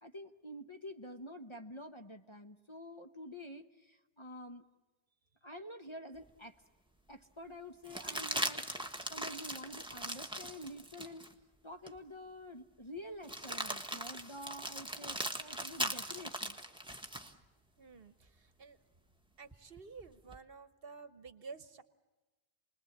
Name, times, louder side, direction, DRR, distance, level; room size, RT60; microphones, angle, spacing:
voice 1, 0.0-4.6 5.4-6.6 7.1-8.7 9.1-11.3 11.6-16.6, equal, 30° left, 6 dB, 1.0 m, -48 dB
sound 1, 6.3-6.4 7.8-11.3 11.9-12.0 13.2-17.3 19.5-20.4, right 1 dB, 5° right, 1.3 m, -40 dB
voice 2, 17.8-18.8 19.4-21.8, right 4 dB, 60° right, 13 dB, 1.2 m, -51 dB
29.0 x 20.5 x 8.6 m, 1.1 s
omnidirectional pair, 1.1 m